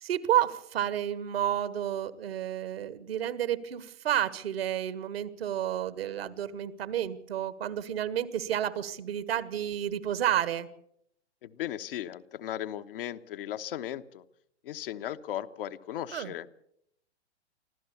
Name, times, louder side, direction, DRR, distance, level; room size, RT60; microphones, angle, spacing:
voice 1, 0.0-10.7 16.1-16.3, right 11 dB, 60° right, 15 dB, 1.6 m, -30 dB
voice 2, 11.4-14.2 14.6-16.6, left 11 dB, 55° left, 9 dB, 1.1 m, -37 dB
25.0 x 15.0 x 7.0 m, 0.74 s
figure-of-eight pair, 110°, 34 cm